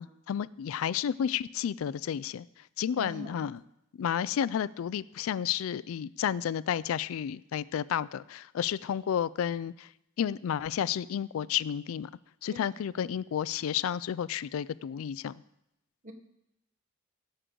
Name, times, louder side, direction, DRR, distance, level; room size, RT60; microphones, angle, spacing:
voice 1, 0.0-2.5 2.8-3.6 4.0-9.9 10.2-12.1 12.4-15.4, left 9 dB, 90° left, 19 dB, 0.3 m, -31 dB
voice 2, 3.0-3.5 12.5-12.7 16.0-16.1, equal, 40° right, 5 dB, 1.0 m, -42 dB
16.5 x 6.7 x 3.8 m, 0.84 s
head